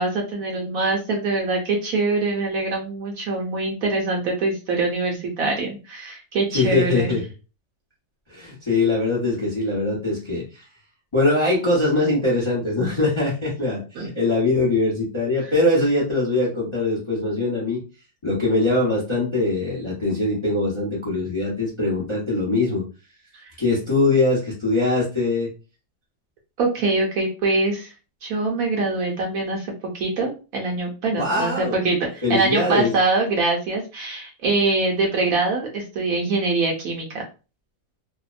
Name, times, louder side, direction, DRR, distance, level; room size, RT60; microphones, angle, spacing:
voice 1, 0.0-7.1 14.0-14.1 23.3-23.5 26.6-27.9 28.2-37.2, right 3 dB, 70° right, 0 dB, 0.9 m, -24 dB
voice 2, 6.5-7.2 8.3-10.7 11.1-17.8 18.2-22.8 23.6-25.5 31.2-31.9 32.2-32.9, left 2 dB, 35° left, -6 dB, 0.5 m, -22 dB
2.7 x 2.0 x 2.4 m, 0.33 s
omnidirectional pair, 1.8 m